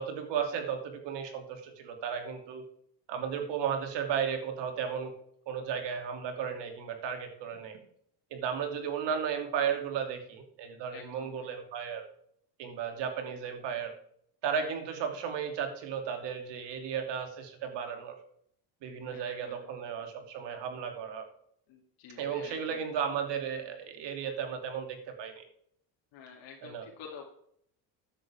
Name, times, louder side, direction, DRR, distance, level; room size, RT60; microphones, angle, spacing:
voice 1, 0.0-2.6 3.1-5.1 5.5-7.8 8.3-12.1 12.6-13.9 14.4-18.1 18.8-21.2 22.2-25.4 26.6-26.9, right 7 dB, 65° right, 5 dB, 2.8 m, -34 dB
voice 2, 10.9-11.5 19.1-19.6 21.7-22.8 26.1-27.2, left 7 dB, 70° left, -2 dB, 2.7 m, -49 dB
13.0 x 10.0 x 3.6 m, 0.67 s
cardioid pair, 105°, 46 cm